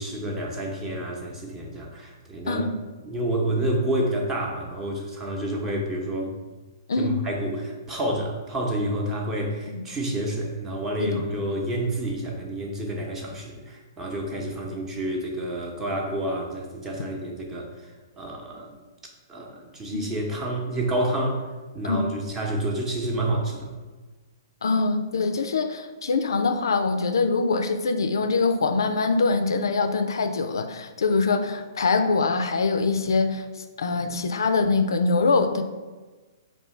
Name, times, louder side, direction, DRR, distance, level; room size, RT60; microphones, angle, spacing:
voice 1, 0.0-2.6 3.0-6.3 7.0-17.9 18.2-18.7 19.3-21.5 21.7-23.7, right 1 dB, 15° right, -1 dB, 0.7 m, -29 dB
voice 2, 24.6-35.6, left 4 dB, 80° left, 8 dB, 0.4 m, -23 dB
4.5 x 2.7 x 3.2 m, 1.3 s
hypercardioid pair, 135°, 2 cm